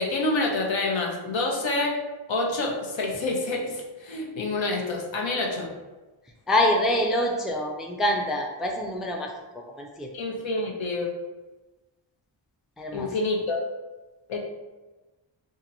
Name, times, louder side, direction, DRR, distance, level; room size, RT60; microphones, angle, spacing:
voice 1, 0.0-2.0 2.3-5.7 10.1-11.2 12.9-13.6 14.3-14.4, left 2 dB, 65° left, 0 dB, 0.8 m, -27 dB
voice 2, 6.5-9.3 9.8-10.1 12.8-13.1, left 1 dB, ahead, 0 dB, 0.4 m, -25 dB
2.8 x 2.6 x 4.1 m, 1.2 s
wide cardioid pair, 85°, 49 cm